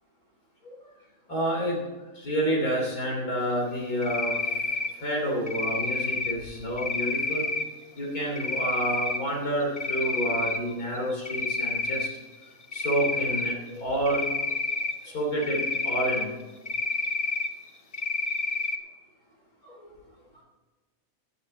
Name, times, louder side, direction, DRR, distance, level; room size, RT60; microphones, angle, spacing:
voice 1, 1.3-1.8 2.2-4.6 5.0-7.5 8.0-12.1 12.7-14.2 15.0-16.3 19.6-19.9, right 1 dB, 90° left, -1 dB, 3.5 m, -29 dB
Cricket, 4.0-4.9 5.5-6.3 6.8-7.6 8.4-9.2 9.6-10.6 11.0-12.1 12.7-13.5 14.1-14.9 15.4-16.2 16.7-17.5 17.9-18.8, left 3 dB, 30° left, 0.9 m, -29 dB
17.5 x 11.0 x 4.0 m, 1.3 s
omnidirectional pair, 1.5 m